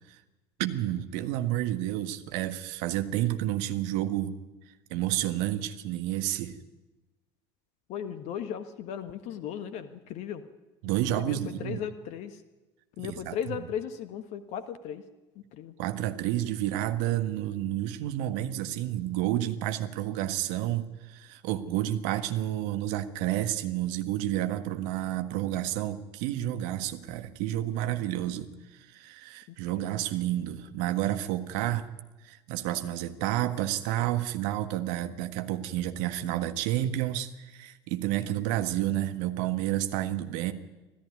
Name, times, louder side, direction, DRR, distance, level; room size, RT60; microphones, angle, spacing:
voice 1, 0.6-4.3 4.9-6.6 10.8-11.8 13.0-13.3 15.8-31.9 32.2-40.5, right 13 dB, 60° right, 9 dB, 1.6 m, -30 dB
voice 2, 7.9-10.4 11.1-12.4 13.0-15.0 15.3-15.7 29.5-30.0, left 9 dB, 55° left, 11 dB, 1.5 m, -37 dB
25.0 x 14.0 x 9.7 m, 1.1 s
figure-of-eight pair, 65°, 14 cm